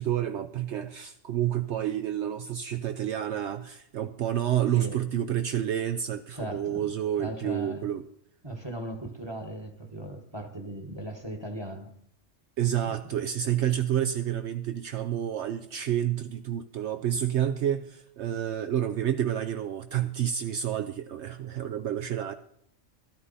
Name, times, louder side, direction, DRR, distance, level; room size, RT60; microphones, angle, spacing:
voice 1, 0.0-8.1 12.6-22.3, right 10 dB, 70° right, 0.9 m, -29 dB
voice 2, 6.3-6.8 7.2-7.8 8.4-11.9 12.9-13.0, right 1 dB, 20° right, 1.2 m, -37 dB
13.5 x 12.5 x 4.0 m
omnidirectional pair, 1.3 m